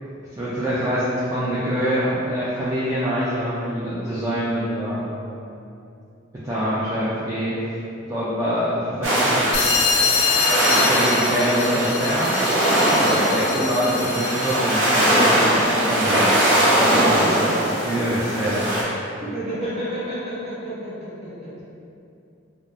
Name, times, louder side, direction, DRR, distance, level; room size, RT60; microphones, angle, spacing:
voice 1, 0.0-5.1 6.4-7.8 8.1-9.5 10.3-12.3 12.8-16.3 16.8-17.5 17.8-18.7, equal, 15° right, -10 dB, 0.3 m, -25 dB
sound 1, 9.0-18.8, right 1 dB, 85° right, 0.6 m, -20 dB
sound 2, 9.5-14.8, left 5 dB, 65° left, 0.4 m, -25 dB
voice 2, 19.2-21.6, equal, 35° right, -11 dB, 1.1 m, -31 dB
3.4 x 2.0 x 2.5 m, 2.6 s
head